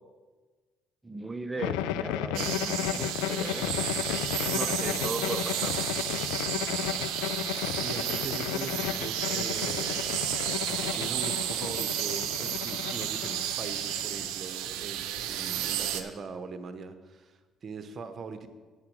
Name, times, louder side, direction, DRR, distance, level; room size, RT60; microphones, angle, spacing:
voice 1, 1.0-3.8 4.5-5.9, right 2 dB, 15° right, 8 dB, 0.9 m, -37 dB
sound 1, 1.6-14.3, left 11 dB, 80° left, 0.4 m, -33 dB
sound 2, 2.3-16.0, right 11 dB, 75° right, 0.7 m, -32 dB
voice 2, 7.8-10.0 10.7-18.5, right 5 dB, 50° right, 9 dB, 1.0 m, -41 dB
8.7 x 7.4 x 6.3 m, 1.4 s
hypercardioid pair, 55°, 0 cm